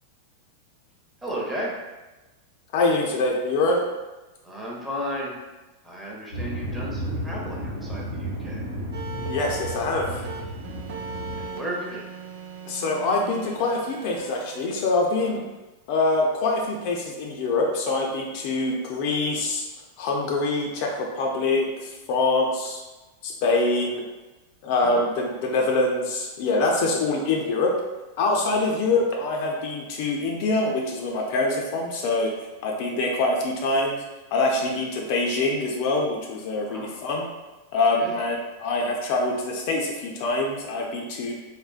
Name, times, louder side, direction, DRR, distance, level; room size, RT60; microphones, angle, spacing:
voice 1, 1.2-1.8 4.4-5.4 5.8-8.6 11.4-12.1 15.2-15.4 24.7-25.1 28.6-28.8 36.7-36.9 37.9-38.2, equal, 10° right, -4 dB, 0.7 m, -34 dB
voice 2, 2.7-3.8 9.3-10.3 12.7-15.4 15.9-19.6 20.0-22.8 23.2-24.0 24.6-27.7 28.2-32.3 32.6-34.0 34.3-37.3 37.7-41.4, left 2 dB, 45° left, 0 dB, 0.4 m, -24 dB
sound 1, 6.3-11.5, equal, 90° left, 0.7 m, -33 dB
sound 2, 8.9-14.7, right 5 dB, 55° right, 0.4 m, -39 dB
3.5 x 2.1 x 2.4 m, 1.1 s
figure-of-eight pair, 90°, 0 cm